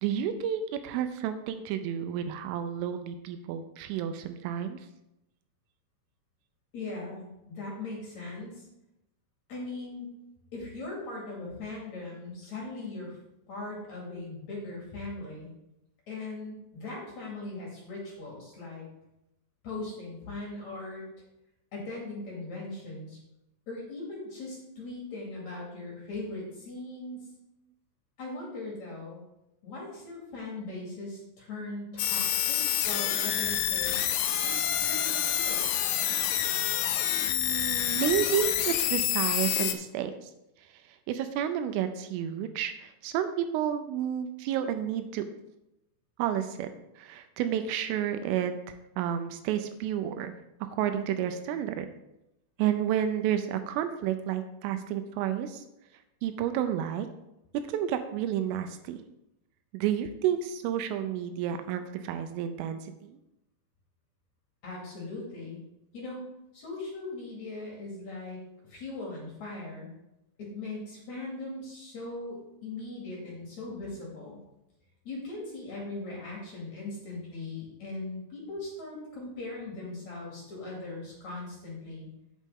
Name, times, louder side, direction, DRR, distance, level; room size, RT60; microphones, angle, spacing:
voice 1, 0.0-4.8 37.2-40.3 41.1-45.2 46.2-46.7 47.0-48.5 49.0-50.3 50.6-51.9 52.6-55.6 56.2-57.1 57.7-59.0 59.7-63.2, right 10 dB, 85° right, 8 dB, 3.1 m, -31 dB
voice 2, 6.7-8.6 9.5-10.1 10.5-13.2 13.5-15.5 16.1-18.9 19.6-21.0 21.7-23.2 23.7-27.3 28.2-29.2 29.6-34.1 34.4-35.7 64.6-65.6 65.9-66.3 66.5-68.4 68.7-69.9 70.4-74.4 75.0-82.1, left 2 dB, 45° left, -4 dB, 2.7 m, -39 dB
sound 1, 32.0-39.7, left 11 dB, 85° left, 3.0 m, -28 dB
8.5 x 8.3 x 3.7 m, 0.87 s
omnidirectional pair, 5.9 m